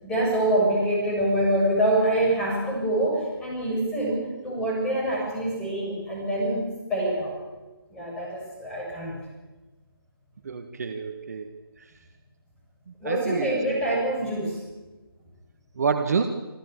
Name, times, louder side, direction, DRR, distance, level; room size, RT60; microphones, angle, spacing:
voice 1, 0.0-7.3 7.9-9.2 13.0-14.6, right 1 dB, 5° left, -3 dB, 7.3 m, -25 dB
voice 2, 10.4-11.5 11.8-11.9 13.0-13.5 15.8-16.3, right 5 dB, 40° right, 8 dB, 1.6 m, -27 dB
26.5 x 15.0 x 8.4 m, 1.2 s
figure-of-eight pair, 150°, 13 cm